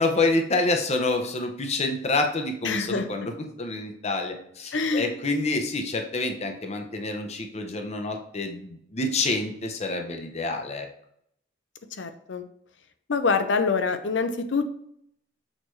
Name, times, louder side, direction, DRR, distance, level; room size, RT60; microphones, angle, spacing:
voice 1, 0.0-3.3 3.6-10.9, left 2 dB, 35° left, 4 dB, 0.7 m, -27 dB
voice 2, 2.6-3.3 4.7-5.1 12.0-12.4 13.1-14.6, left 4 dB, 75° left, 9 dB, 0.6 m, -25 dB
6.5 x 4.7 x 3.1 m, 0.71 s
head